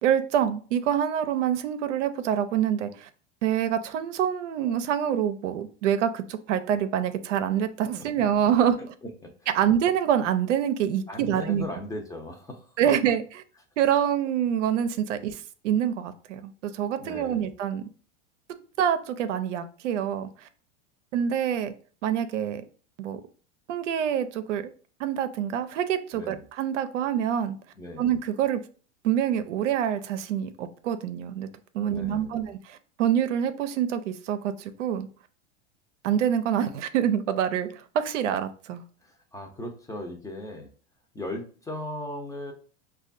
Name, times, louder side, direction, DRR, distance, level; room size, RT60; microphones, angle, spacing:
voice 1, 0.0-3.1 3.4-8.8 9.5-11.6 12.8-13.2 13.8-17.8 18.8-20.5 21.1-21.7 22.0-22.6 23.0-23.2 23.7-24.7 25.0-27.5 28.0-28.6 29.0-31.5 31.7-35.1 36.0-38.8, right 9 dB, 80° right, 10 dB, 0.6 m, -26 dB
voice 2, 9.0-9.3 11.1-13.0 17.0-17.5 26.1-26.5 27.8-28.1 31.8-32.5 39.0-40.7 41.1-42.5, left 1 dB, 10° left, 3 dB, 0.6 m, -38 dB
5.0 x 2.3 x 2.5 m, 0.40 s
hypercardioid pair, 105°, 36 cm